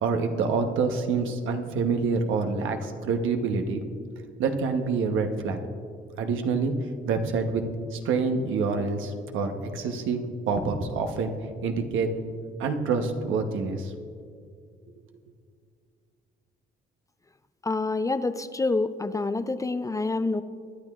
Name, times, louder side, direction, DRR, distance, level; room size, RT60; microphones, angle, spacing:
voice 1, 0.0-3.8 4.4-5.6 6.2-6.7 7.1-7.6 7.9-11.3 11.6-12.1 12.6-13.9, right 4 dB, 80° right, 5 dB, 1.0 m, -27 dB
voice 2, 17.6-20.4, left 3 dB, 15° left, 12 dB, 0.4 m, -27 dB
22.5 x 10.5 x 2.4 m, 2.2 s
cardioid pair, 90°, 20 cm